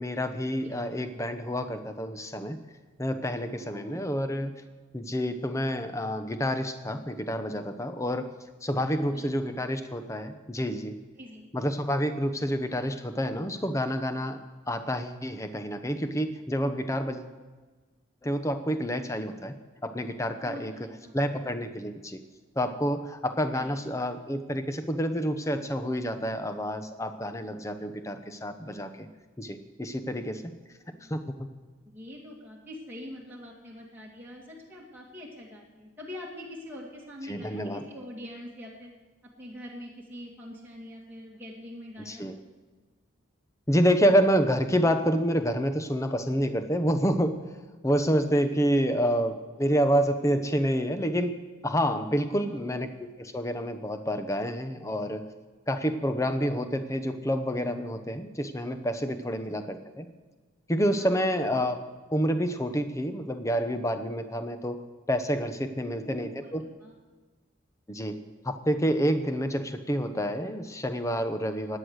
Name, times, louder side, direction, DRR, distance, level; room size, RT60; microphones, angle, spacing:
voice 1, 0.0-2.6 3.0-4.5 4.9-8.3 8.6-11.0 11.5-14.4 14.7-17.3 18.2-19.5 19.8-20.7 21.1-22.2 22.6-29.1 29.4-30.5 31.1-31.2 37.3-37.8 42.1-42.3 43.7-47.4 47.8-55.3 55.7-60.1 60.7-61.8 62.1-64.8 65.1-66.6 67.9-68.2 68.4-71.8, equal, 15° left, 8 dB, 0.8 m, -28 dB
voice 2, 3.6-4.2 8.8-9.3 11.2-11.5 20.4-21.1 23.5-24.0 30.9-31.2 31.9-38.9 39.4-42.3 52.4-52.6 59.5-59.6 61.0-61.1 65.8-66.9, left 1 dB, 10° right, -4 dB, 2.4 m, -44 dB
17.0 x 9.8 x 6.5 m, 1.3 s
head